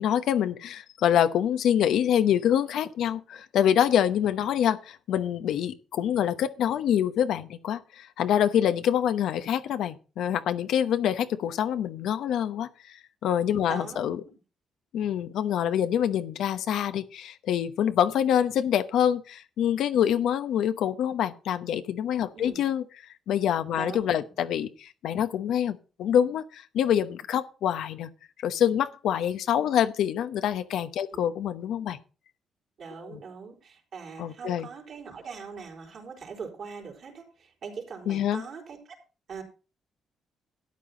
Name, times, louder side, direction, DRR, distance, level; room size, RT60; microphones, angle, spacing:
voice 1, 0.0-14.2 14.9-22.8 23.3-28.1 28.4-32.0 33.1-33.2 34.2-34.7 38.1-38.4, left 9 dB, 80° left, 0.9 m, -26 dB
voice 2, 13.7-14.3 22.3-22.6 23.7-24.1 31.1-31.2 32.8-38.8 39.3-39.4, right 5 dB, 60° right, 4.2 m, -41 dB
13.0 x 9.4 x 3.8 m
cardioid pair, 90°, 0 cm